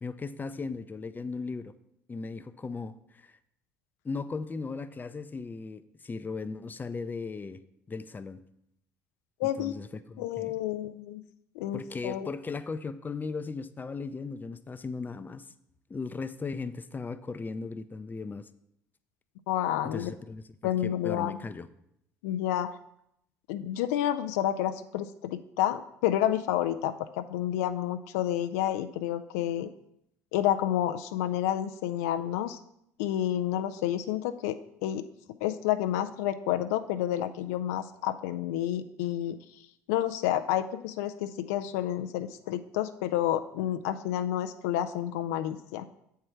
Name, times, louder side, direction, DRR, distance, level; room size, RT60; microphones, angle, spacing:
voice 1, 0.0-1.7 2.1-3.4 4.0-7.6 7.9-8.4 9.4-10.5 11.7-15.4 15.9-18.5 19.8-21.7, left 4 dB, 20° left, 12 dB, 0.5 m, -37 dB
voice 2, 9.4-9.7 10.2-11.2 11.6-12.3 19.5-20.1 20.6-21.4 22.2-22.7 23.5-29.7 30.3-32.6 33.0-35.0 35.4-39.4 39.9-45.8, left 12 dB, 75° left, 9 dB, 0.4 m, -30 dB
7.5 x 4.6 x 5.6 m, 0.76 s
hypercardioid pair, 60°, 8 cm